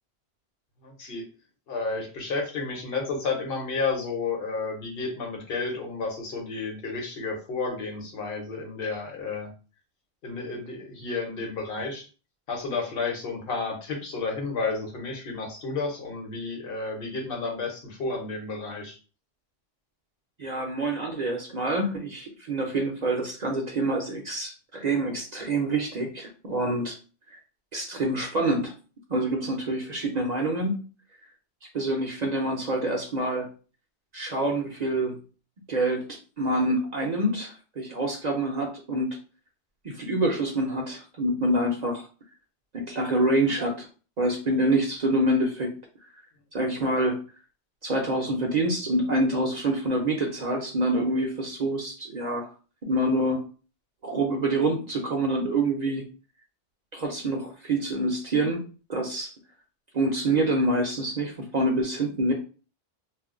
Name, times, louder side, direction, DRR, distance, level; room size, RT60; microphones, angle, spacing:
voice 1, 0.8-1.2 1.7-9.5 10.2-12.1 12.5-19.0, left 4 dB, 60° left, 1 dB, 1.0 m, -31 dB
voice 2, 20.4-27.0 27.7-28.7 29.1-30.8 31.7-33.5 34.1-35.2 35.7-39.1 39.8-42.1 42.7-43.9 44.2-45.7 46.5-47.2 47.8-52.5 52.8-53.5 54.0-56.0 56.9-59.3 59.9-62.3, right 1 dB, 50° right, 1 dB, 0.6 m, -26 dB
2.4 x 2.2 x 3.6 m, 0.36 s
omnidirectional pair, 1.1 m